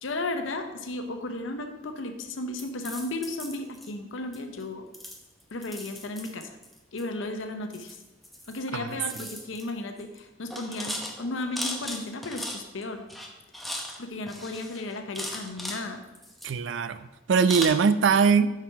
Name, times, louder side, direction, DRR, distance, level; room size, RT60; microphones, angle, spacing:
voice 1, 0.0-4.8 5.5-6.6 6.9-8.0 8.5-13.0 14.0-16.0, left 2 dB, 85° left, 6 dB, 0.7 m, -34 dB
sound 1, 2.5-3.9 4.3-4.6 4.9-7.0 7.7-8.6 8.9-9.7 10.0-10.2 10.5-12.8 13.1-14.0 14.3-15.8 16.1-16.9 17.5-17.7, left 1 dB, ahead, 0.8 m, -38 dB
voice 2, 16.4-18.5, right 5 dB, 70° right, 13 dB, 0.4 m, -22 dB
5.9 x 5.9 x 4.7 m, 1.1 s
head